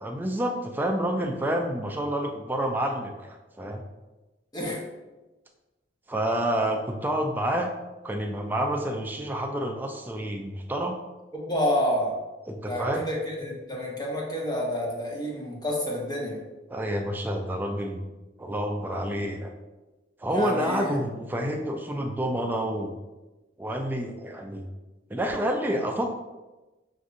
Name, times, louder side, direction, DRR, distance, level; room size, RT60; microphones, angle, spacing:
voice 1, 0.0-3.8 6.1-7.7 8.0-11.0 12.5-13.1 16.7-18.0 18.4-19.5 20.2-22.9 23.6-24.6 25.1-26.1, right 1 dB, 10° right, 2 dB, 0.3 m, -28 dB
voice 2, 11.3-12.1 12.7-16.4 20.3-21.0, equal, 25° left, -3 dB, 0.9 m, -29 dB
6.2 x 2.6 x 2.5 m, 1.1 s
head